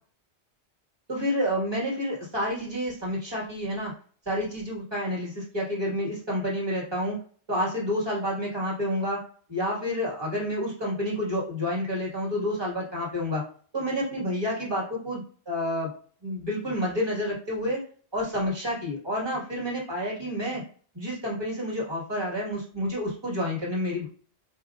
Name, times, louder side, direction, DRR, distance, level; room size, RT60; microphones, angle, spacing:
voice 1, 1.1-3.9 4.2-7.2 7.5-9.2 9.5-13.4 13.7-15.9 16.2-17.8 18.1-20.6 20.9-24.1, equal, 25° right, -4 dB, 1.6 m, -29 dB
4.4 x 2.8 x 2.4 m, 0.42 s
omnidirectional pair, 1.1 m